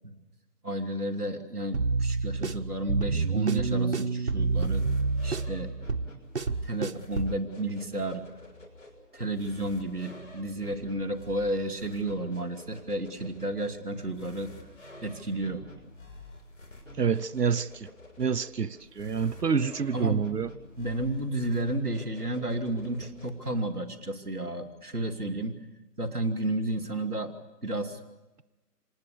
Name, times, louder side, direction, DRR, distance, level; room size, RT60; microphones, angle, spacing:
voice 1, 0.6-4.9 5.2-5.7 6.6-8.2 9.1-14.5 15.0-15.7 19.9-20.3 20.8-25.6 26.0-27.3 27.6-28.0, right 1 dB, 5° left, 1.3 m, -32 dB
sound 1, 1.7-7.4, right 4 dB, 45° right, 0.9 m, -28 dB
sound 2, 4.4-23.6, left 2 dB, 50° left, 6.7 m, -49 dB
voice 2, 17.0-17.9 18.2-20.5, right 6 dB, 75° right, 1.0 m, -27 dB
26.0 x 20.0 x 6.9 m
figure-of-eight pair, 170°, 48 cm